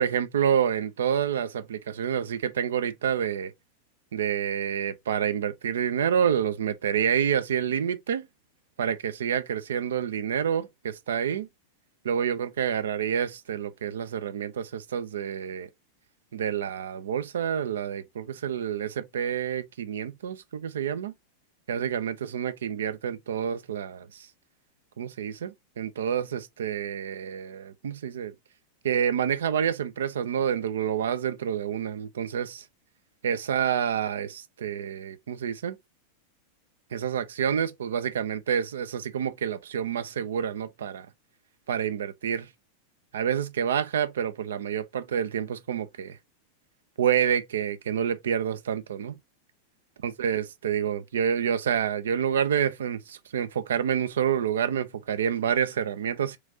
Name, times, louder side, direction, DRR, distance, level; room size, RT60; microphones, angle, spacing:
voice 1, 0.0-3.5 4.1-8.3 8.8-11.5 12.0-15.7 16.3-21.1 21.7-24.3 25.0-28.3 28.8-32.6 33.2-35.8 36.9-41.1 41.7-42.5 43.1-46.2 47.0-49.2 50.0-56.4, right 8 dB, 65° right, 0.4 m, -28 dB
3.0 x 2.4 x 2.7 m
figure-of-eight pair, 90°, 0 cm